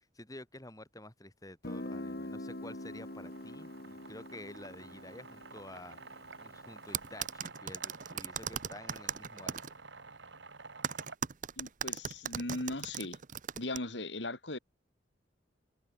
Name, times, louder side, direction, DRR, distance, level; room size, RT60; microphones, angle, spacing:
voice 1, 0.0-9.7, left 1 dB, 20° left, 4.8 m, -50 dB
Guitar, 1.6-7.2, left 1 dB, 55° left, 2.3 m, -44 dB
sound 1, 2.4-11.2, right 4 dB, 80° right, 3.4 m, -51 dB
sound 2, 6.9-9.7 10.8-13.8, right 7 dB, 45° right, 0.9 m, -37 dB
voice 2, 11.6-13.2 13.6-14.6, left 2 dB, 75° left, 4.6 m, -38 dB
head